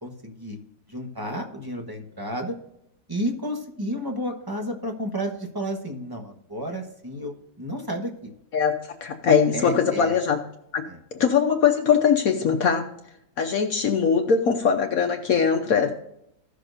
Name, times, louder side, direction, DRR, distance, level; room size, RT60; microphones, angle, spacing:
voice 1, 0.0-0.6 0.9-2.6 3.1-8.3 9.5-10.1 10.9-11.0, equal, 15° right, 3 dB, 1.0 m, -32 dB
voice 2, 9.0-10.4 10.7-10.8 11.1-12.9 13.4-15.9, left 6 dB, 60° left, 4 dB, 1.2 m, -21 dB
16.0 x 6.4 x 2.6 m, 0.78 s
omnidirectional pair, 1.8 m